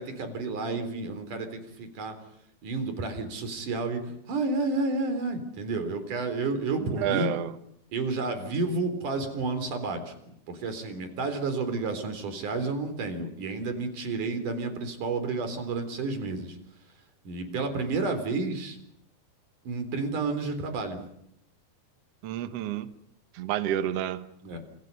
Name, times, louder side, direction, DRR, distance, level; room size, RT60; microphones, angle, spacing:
voice 1, 0.0-2.2 2.6-7.3 7.9-10.1 10.5-16.6 17.2-18.8 19.6-21.0 24.4-24.6, right 3 dB, 50° right, 8 dB, 5.1 m, -31 dB
voice 2, 6.9-7.5 22.2-22.9 23.3-24.3, right 11 dB, 90° right, 11 dB, 1.3 m, -29 dB
30.0 x 27.5 x 5.6 m, 0.72 s
omnidirectional pair, 4.6 m